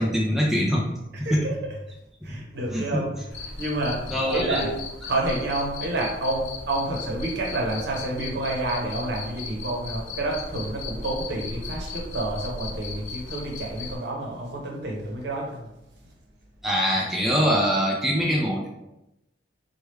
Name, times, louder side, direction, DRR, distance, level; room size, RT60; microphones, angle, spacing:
voice 1, 0.0-1.5 2.3-2.4 2.7-3.1 4.1-4.7 16.6-18.7, equal, ahead, -3 dB, 0.4 m, -24 dB
voice 2, 1.1-1.7 2.2-4.7 5.1-15.7, right 2 dB, 65° right, -1 dB, 0.8 m, -29 dB
Cricket, 3.3-14.0, left 3 dB, 80° left, 0.6 m, -36 dB
3.2 x 2.3 x 3.1 m, 0.90 s
head